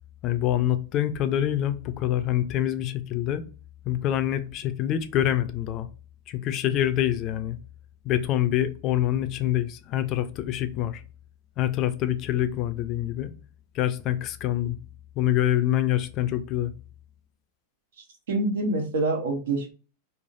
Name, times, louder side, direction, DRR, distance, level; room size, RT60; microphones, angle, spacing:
voice 1, 0.2-3.4 3.9-5.9 6.3-7.6 8.0-11.0 11.6-13.3 13.7-14.8 15.2-16.7, left 12 dB, 40° left, 0.4 m, -26 dB
voice 2, 18.3-19.7, right 2 dB, 85° right, 1.0 m, -26 dB
3.2 x 2.0 x 2.5 m
hypercardioid pair, 125°, 0 cm